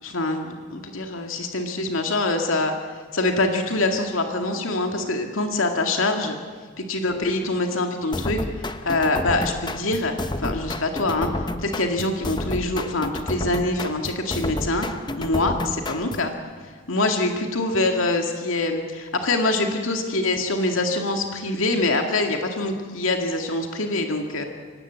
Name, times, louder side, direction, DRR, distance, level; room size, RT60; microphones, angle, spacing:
voice 1, 0.0-2.7 3.1-6.4 6.8-14.9 15.2-16.3 16.9-24.4, left 2 dB, 85° left, 3 dB, 2.2 m, -24 dB
sound 1, 8.1-16.3, left 1 dB, 20° left, 0.8 m, -30 dB
24.5 x 18.5 x 8.1 m, 1.5 s
head